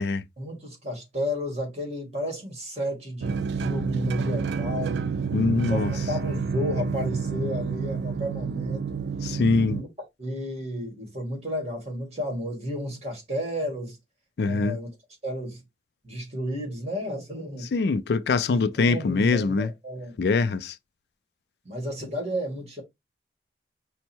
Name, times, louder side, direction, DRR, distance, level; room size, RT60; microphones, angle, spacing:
voice 1, 0.4-5.1 5.7-9.0 9.7-9.9 10.2-14.0 14.4-14.9 15.2-15.6 16.0-17.7 18.1-18.2 18.5-20.2 21.7-22.8, equal, 35° right, 1.9 m, -32 dB
sound 1, 3.2-9.8, right 5 dB, 75° right, 0.3 m, -29 dB
voice 2, 5.3-5.9 9.2-9.8 14.4-14.8 17.7-19.7 20.2-20.8, left 4 dB, 70° left, 0.4 m, -23 dB
5.3 x 2.1 x 4.4 m
head